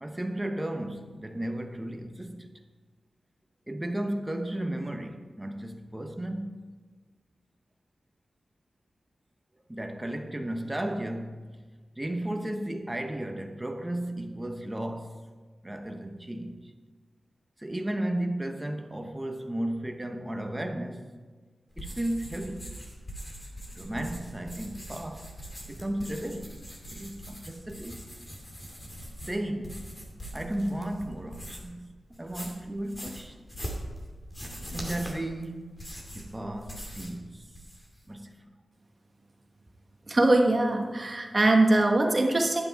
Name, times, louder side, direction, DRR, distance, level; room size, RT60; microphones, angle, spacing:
voice 1, 0.0-2.5 3.7-6.7 9.7-11.5 12.0-15.2 15.6-16.7 17.6-21.0 21.8-22.7 23.7-25.3 25.7-26.5 26.9-28.0 29.3-29.9 30.3-31.9 32.2-33.4 34.7-35.7 36.1-37.4 38.1-38.4, right 1 dB, 15° right, 1.0 m, -34 dB
sound 1, 21.7-31.8 32.1-37.2 37.5-38.0, equal, 25° left, 2.6 m, -42 dB
voice 2, 40.1-42.6, right 2 dB, 30° right, 1.3 m, -22 dB
11.5 x 9.5 x 4.6 m
wide cardioid pair, 120°, 0 cm